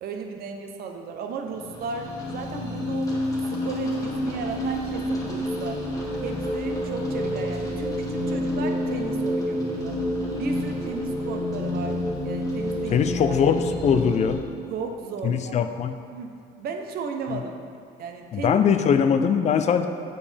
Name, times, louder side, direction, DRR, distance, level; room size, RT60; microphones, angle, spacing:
voice 1, 0.0-3.1 3.5-5.8 6.2-10.0 10.3-13.4 14.7-15.7 16.1-16.3 16.6-17.5 18.0-18.6, right 5 dB, 65° right, 4 dB, 0.7 m, -35 dB
sound 1, 1.5-14.3, left 1 dB, 20° left, 1.3 m, -28 dB
voice 2, 12.9-14.4 15.2-16.0 17.3-17.4 18.3-19.9, left 7 dB, 45° left, 8 dB, 0.4 m, -21 dB
7.1 x 5.2 x 3.3 m, 2.4 s
cardioid pair, 110°, 17 cm